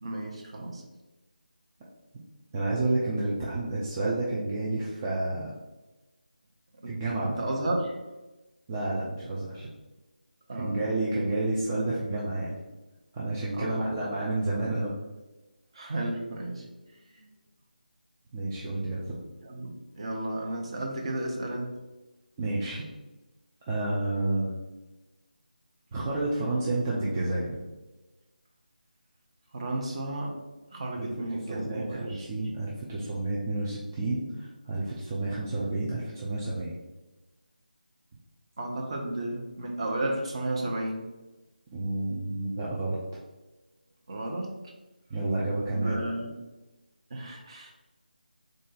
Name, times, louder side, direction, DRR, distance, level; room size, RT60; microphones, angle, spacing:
voice 1, 0.0-0.9 6.8-6.9 7.2-7.9 10.5-10.8 13.5-13.9 15.7-16.7 17.1-17.3 19.4-21.8 29.5-30.4 30.7-32.3 38.6-41.1 44.1-44.7 45.7-46.3 47.1-47.7, right 1 dB, 35° right, 0 dB, 0.8 m, -33 dB
voice 2, 2.5-5.5 6.9-7.3 8.7-9.7 10.5-12.6 13.1-14.9 18.3-19.1 22.4-22.8 23.7-24.5 25.9-27.6 30.9-31.1 31.5-36.7 41.7-43.0 45.1-45.9, right 2 dB, 15° right, -6 dB, 0.4 m, -30 dB
3.8 x 2.6 x 3.9 m, 1.1 s
figure-of-eight pair, 160°, 5 cm